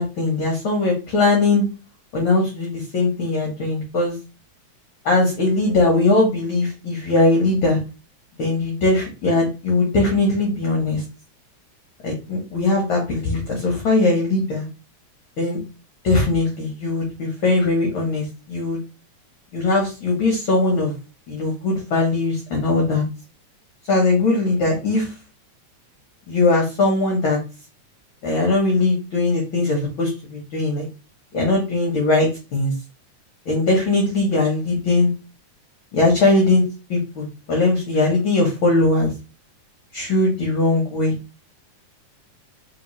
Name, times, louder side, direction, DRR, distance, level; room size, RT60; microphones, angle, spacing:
voice 1, 0.0-1.6 2.1-4.2 5.0-7.8 8.4-11.0 12.0-14.7 15.4-15.6 16.0-18.8 19.5-20.9 21.3-23.0 23.9-25.1 26.3-27.4 28.2-30.9 31.3-32.7 33.5-35.1 35.9-36.6 36.9-39.1 39.9-41.1, left 2 dB, 55° left, 0 dB, 1.6 m, -20 dB
4.0 x 3.8 x 3.1 m, 0.30 s
omnidirectional pair, 3.4 m